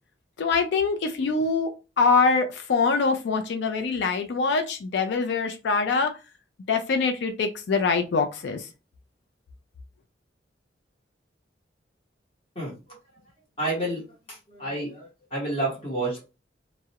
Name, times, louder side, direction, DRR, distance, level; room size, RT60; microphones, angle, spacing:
voice 1, 0.4-1.7 2.0-6.1 6.7-8.7, left 4 dB, 70° left, 0.4 m, -24 dB
voice 2, 13.6-14.0 14.3-16.2, right 1 dB, 30° left, 0.9 m, -29 dB
2.3 x 2.0 x 2.7 m
head